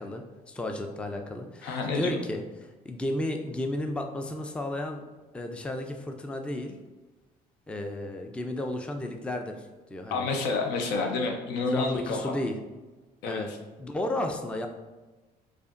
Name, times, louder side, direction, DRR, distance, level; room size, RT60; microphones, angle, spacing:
voice 1, 0.0-5.0 5.3-6.8 7.7-10.3 11.7-12.6 13.3-13.5 13.8-14.7, left 1 dB, 5° left, 4 dB, 0.3 m, -33 dB
voice 2, 1.6-2.1 10.1-12.3 13.2-13.4, left 3 dB, 85° left, 3 dB, 0.7 m, -29 dB
4.9 x 2.5 x 2.5 m, 1.2 s
cardioid pair, 110°, 17 cm